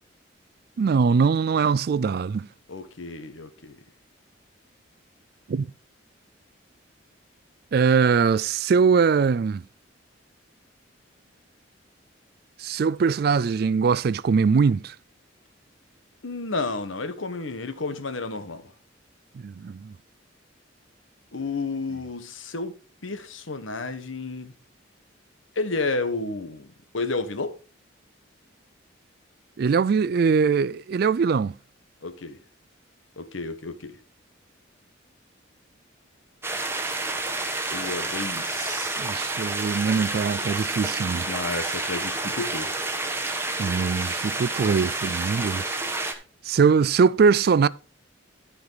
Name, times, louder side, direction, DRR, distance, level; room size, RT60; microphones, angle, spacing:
voice 1, 0.8-2.5 5.5-5.7 7.7-9.6 12.6-14.9 19.3-20.0 29.6-31.6 38.7-41.3 43.2-46.2 46.4-47.7, right 5 dB, 50° right, 0.3 m, -22 dB
voice 2, 2.7-3.8 16.2-18.6 21.3-22.7 23.0-24.5 25.6-27.6 32.0-32.4 33.2-34.0 37.5-39.0 41.3-42.7, left 3 dB, 80° left, 1.1 m, -31 dB
sound 1, 36.4-46.1, right 2 dB, 10° right, 1.0 m, -29 dB
13.5 x 4.9 x 4.0 m
head